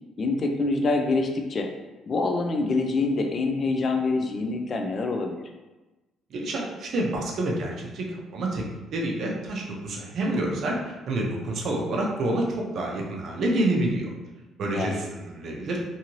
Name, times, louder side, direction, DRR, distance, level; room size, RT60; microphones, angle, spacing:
voice 1, 0.2-1.7 2.1-5.5 14.7-15.0, left 3 dB, 35° left, 4 dB, 0.3 m, -26 dB
voice 2, 6.3-8.0 8.3-8.6 8.9-14.1 14.6-15.8, right 1 dB, 55° right, -1 dB, 0.6 m, -28 dB
2.6 x 2.6 x 2.9 m, 1.1 s
cardioid pair, 140°, 0 cm